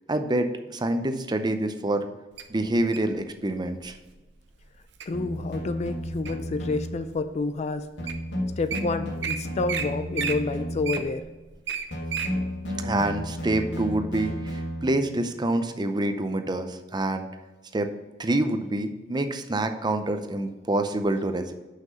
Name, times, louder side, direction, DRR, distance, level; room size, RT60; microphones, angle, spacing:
voice 1, 0.1-2.1 2.5-3.9 12.8-17.3 17.7-17.9 18.2-21.5, right 1 dB, 25° right, 7 dB, 0.6 m, -27 dB
Wild animals, 2.4-3.1 3.8-4.1 4.6-5.1 5.6-6.5 7.1-7.2 7.8-7.9 8.1-8.2 8.5-8.8 9.2-9.4 9.7-9.8 10.1-12.3 12.8-12.9, right 7 dB, 70° right, 0.7 m, -31 dB
sound 1, 5.1-7.0 8.0-11.1 11.9-15.1, equal, 70° left, 1.9 m, -33 dB
voice 2, 5.1-7.9 8.6-11.2, left 3 dB, 40° left, 11 dB, 0.4 m, -29 dB
6.0 x 5.8 x 5.5 m, 1.2 s
head